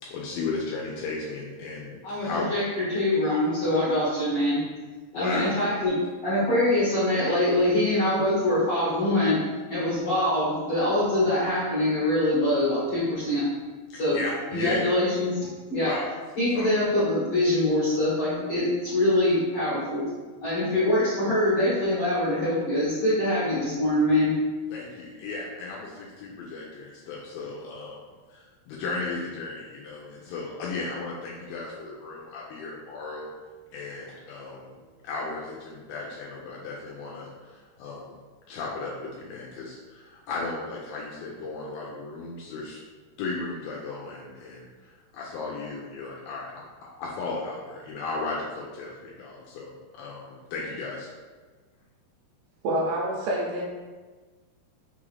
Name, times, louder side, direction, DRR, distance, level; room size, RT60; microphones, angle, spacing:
voice 1, 0.0-2.5 5.1-5.6 13.9-15.0 15.7-16.1 16.5-16.7 24.7-28.0 28.3-33.3 33.7-34.7 35.0-38.2 38.5-42.8 43.2-46.6 47.0-51.1, left 3 dB, 80° left, -4 dB, 2.2 m, -35 dB
voice 2, 2.0-2.6 2.9-4.6 5.1-9.4 9.7-13.4 13.9-14.2 14.5-15.4 15.7-15.9 16.4-20.0 20.4-24.3, left 1 dB, 55° left, -12 dB, 1.5 m, -24 dB
voice 3, 52.6-53.6, right 1 dB, 80° right, -3 dB, 2.4 m, -27 dB
6.0 x 2.4 x 3.2 m, 1.3 s
omnidirectional pair, 4.6 m